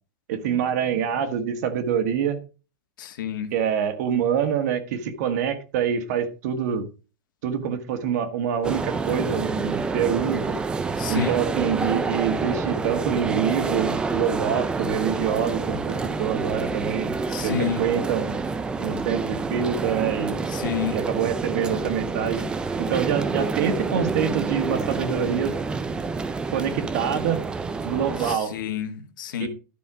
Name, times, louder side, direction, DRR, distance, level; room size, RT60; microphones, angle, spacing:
voice 1, 0.3-2.4 3.5-6.9 7.4-10.6 11.1-17.1 17.4-18.4 18.8-20.4 20.9-22.4 22.8-25.5 26.5-27.4 27.8-28.5 29.4-29.5, right 8 dB, 55° right, 1.6 m, -26 dB
voice 2, 3.0-3.5 11.0-11.3 17.3-17.8 20.5-21.0 28.2-29.5, left 8 dB, 75° left, 1.9 m, -29 dB
sound 1, 8.6-28.4, right 4 dB, 10° right, 0.5 m, -28 dB
12.0 x 5.5 x 4.9 m
supercardioid pair, 170°, 11 cm